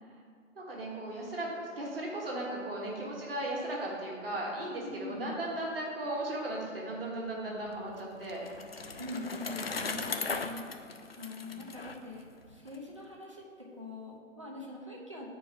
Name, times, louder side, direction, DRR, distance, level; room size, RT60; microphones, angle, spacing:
voice 1, 0.6-8.4 9.2-9.3 11.4-11.6, right 1 dB, 45° right, -3 dB, 1.7 m, -36 dB
voice 2, 4.7-5.4 9.0-10.6 11.2-15.3, left 2 dB, 25° right, -3 dB, 0.7 m, -43 dB
Bicycle, 7.7-12.8, left 4 dB, 50° left, 0.5 m, -38 dB
8.1 x 4.7 x 5.2 m, 2.1 s
hypercardioid pair, 180°, 39 cm